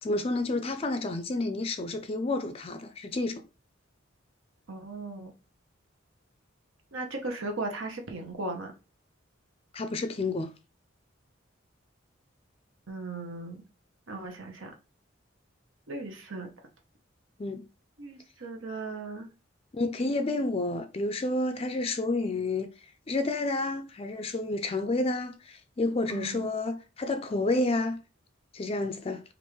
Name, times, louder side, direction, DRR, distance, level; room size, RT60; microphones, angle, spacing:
voice 1, 0.0-3.4 9.7-10.5 17.4-17.6 19.7-22.7 23.1-28.0 28.5-29.2, left 2 dB, 30° left, 0.4 m, -30 dB
voice 2, 4.7-5.3 6.9-8.7 12.9-13.6 14.1-14.7 15.9-16.5 18.0-19.3 26.1-26.5, right 2 dB, 80° right, 0.9 m, -37 dB
5.3 x 2.5 x 3.1 m
head